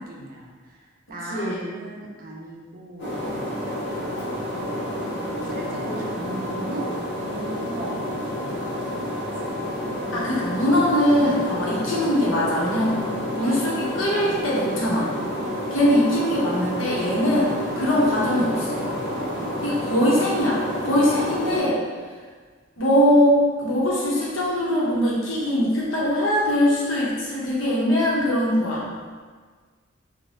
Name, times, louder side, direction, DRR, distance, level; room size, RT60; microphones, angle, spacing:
voice 1, 0.0-3.2 5.4-9.2 9.4-9.8 10.0-10.3, right 1 dB, 45° right, -2 dB, 0.5 m, -38 dB
voice 2, 1.3-1.6 5.9-6.3 10.1-13.0 13.3-15.1 15.7-18.8 19.6-21.8 22.8-28.9, equal, 85° left, -5 dB, 0.8 m, -22 dB
sound 1, 3.0-21.6, equal, 60° left, 1.0 m, -29 dB
2.6 x 2.1 x 3.2 m, 1.5 s
head